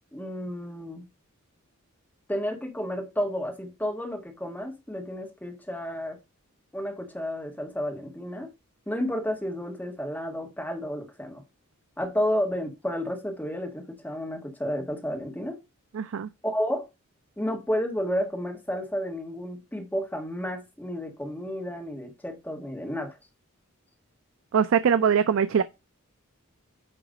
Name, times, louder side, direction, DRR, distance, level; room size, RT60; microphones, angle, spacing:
voice 1, 0.1-1.0 2.3-6.2 6.7-8.5 8.9-11.4 12.0-15.6 16.4-16.9 17.4-23.1, equal, 10° left, 1.4 m, -31 dB
voice 2, 15.9-16.3 24.5-25.6, right 7 dB, 65° right, 0.4 m, -22 dB
9.0 x 3.1 x 5.0 m
head